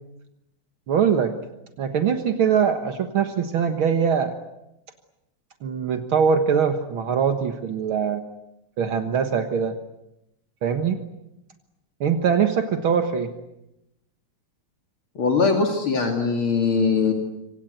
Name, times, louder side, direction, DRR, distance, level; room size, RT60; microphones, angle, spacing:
voice 1, 0.9-1.3 1.8-4.3 5.6-8.2 8.8-9.8 10.6-11.0 12.0-13.3, right 7 dB, 70° right, 6 dB, 2.2 m, -22 dB
voice 2, 15.2-17.1, left 4 dB, 70° left, 2 dB, 3.4 m, -21 dB
26.5 x 26.0 x 8.0 m, 0.88 s
omnidirectional pair, 2.4 m